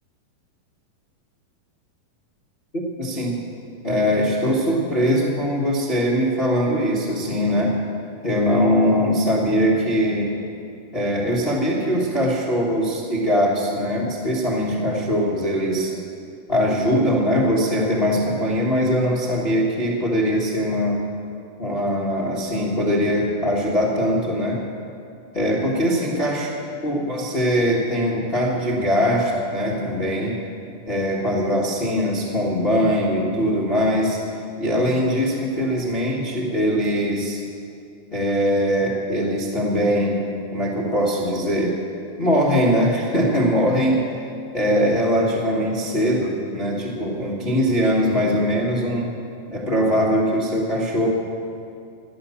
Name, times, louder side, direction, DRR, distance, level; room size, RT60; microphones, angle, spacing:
voice 1, 2.7-3.4 3.8-7.8 8.2-10.3 10.9-15.9 16.5-21.0 21.6-24.6 25.3-26.5 26.8-30.4 30.8-34.2 34.6-37.4 38.1-40.2 40.5-41.8 42.2-44.0 44.5-49.1 49.5-51.1, equal, 50° left, -3 dB, 0.7 m, -21 dB
16.5 x 11.0 x 7.1 m, 2.5 s
omnidirectional pair, 4.0 m